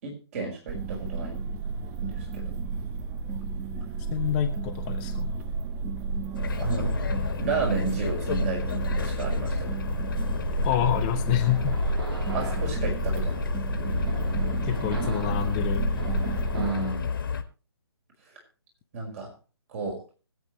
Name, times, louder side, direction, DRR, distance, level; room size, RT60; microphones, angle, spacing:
voice 1, 0.0-1.5 2.0-2.5 6.6-6.9 7.4-9.8 12.3-13.5 16.5-17.1 18.9-19.3 19.7-20.0, right 4 dB, 30° right, 1 dB, 5.0 m, -32 dB
sound 1, 0.7-16.7, right 4 dB, 15° right, 0.7 m, -31 dB
voice 2, 4.1-5.3 10.6-11.8 14.6-16.4, left 12 dB, 20° left, 6 dB, 0.8 m, -28 dB
sound 2, 6.3-17.4, left 6 dB, 50° left, 1.8 m, -31 dB
sound 3, 10.3-17.0, right 2 dB, 65° right, 3.2 m, -38 dB
24.5 x 8.2 x 3.1 m, 0.35 s
hypercardioid pair, 155°, 14 cm